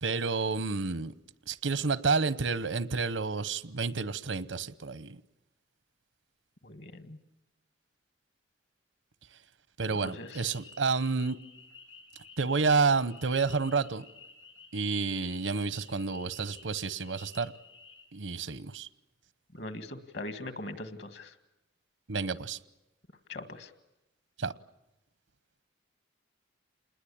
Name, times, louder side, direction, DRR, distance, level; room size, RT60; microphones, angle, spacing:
voice 1, 0.0-1.1 1.5-5.2 9.8-11.4 12.4-14.0 14.7-17.5 18.1-18.9 22.1-22.6 24.4-24.5, right 4 dB, 85° right, 0.9 m, -30 dB
voice 2, 6.6-7.2 10.0-10.4 19.5-21.3 23.3-23.7, left 2 dB, 60° left, 1.9 m, -41 dB
sound 1, 10.0-18.1, left 4 dB, 80° left, 5.1 m, -53 dB
28.0 x 20.5 x 8.7 m
head